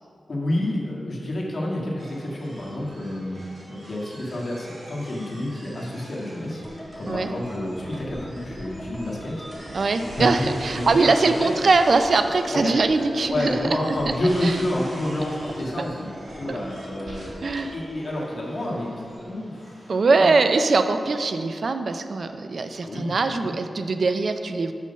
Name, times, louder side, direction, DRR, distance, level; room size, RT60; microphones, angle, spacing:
voice 1, 0.3-6.6 7.0-9.4 10.0-11.5 12.6-12.8 13.3-20.3 22.8-23.5, left 1 dB, 50° left, -4 dB, 1.7 m, -29 dB
sound 1, 2.0-20.0, right 1 dB, 80° right, 1.7 m, -45 dB
sound 2, 6.6-18.8 19.1-19.2, equal, 10° right, 1.7 m, -40 dB
voice 2, 9.7-13.5 14.1-14.2 14.4-14.6 16.5-16.6 17.4-17.7 19.9-24.7, right 3 dB, 60° right, 8 dB, 0.4 m, -22 dB
6.1 x 5.6 x 5.6 m, 2.6 s
wide cardioid pair, 95°, 0 cm